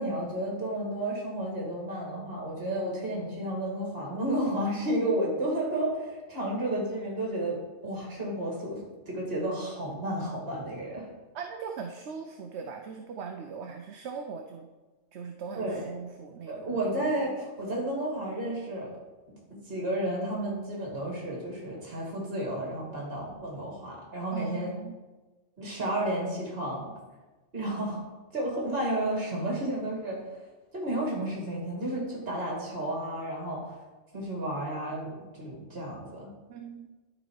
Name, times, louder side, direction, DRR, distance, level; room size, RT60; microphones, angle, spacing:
voice 1, 0.0-11.1 15.5-15.8 16.5-18.9 19.3-24.7 25.6-26.9 27.5-28.0 28.3-30.2 30.7-33.8 34.1-36.3, right 1 dB, 50° right, -3 dB, 2.5 m, -32 dB
voice 2, 11.3-14.7 15.1-16.9 24.3-25.0 36.5-36.9, right 5 dB, 65° right, 3 dB, 0.9 m, -40 dB
12.0 x 4.1 x 4.7 m, 1.2 s
omnidirectional pair, 1.3 m